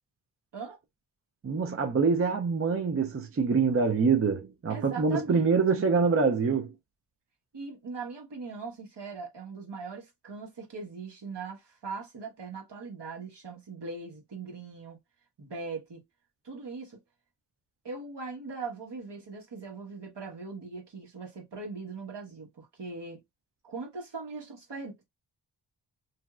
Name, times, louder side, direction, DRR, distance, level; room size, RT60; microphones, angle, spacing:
voice 1, 1.4-6.7, right 5 dB, 30° right, 0.5 m, -25 dB
voice 2, 4.7-5.8 7.5-15.0 15.4-16.0 16.4-17.0 17.8-23.2 23.6-25.0, right 4 dB, 65° right, 1.3 m, -40 dB
3.0 x 2.6 x 2.4 m
wide cardioid pair, 80°, 44 cm